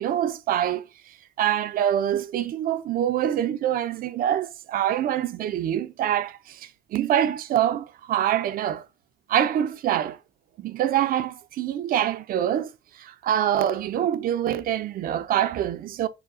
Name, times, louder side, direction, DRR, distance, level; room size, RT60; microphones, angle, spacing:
voice 1, 0.0-8.9 9.3-10.2 10.6-16.1, right 10 dB, 60° right, 0.6 m, -25 dB
4.9 x 2.3 x 4.8 m
cardioid pair, 110°, 17 cm